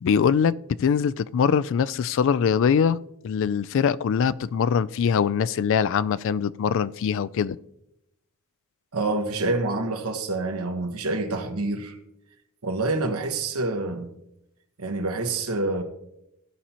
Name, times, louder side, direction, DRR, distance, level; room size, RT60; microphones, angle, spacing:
voice 1, 0.0-7.6, left 7 dB, 60° left, 0.3 m, -23 dB
voice 2, 8.9-12.0 12.6-14.1 14.8-15.8, right 2 dB, 75° right, 1.2 m, -27 dB
15.5 x 5.5 x 2.9 m
head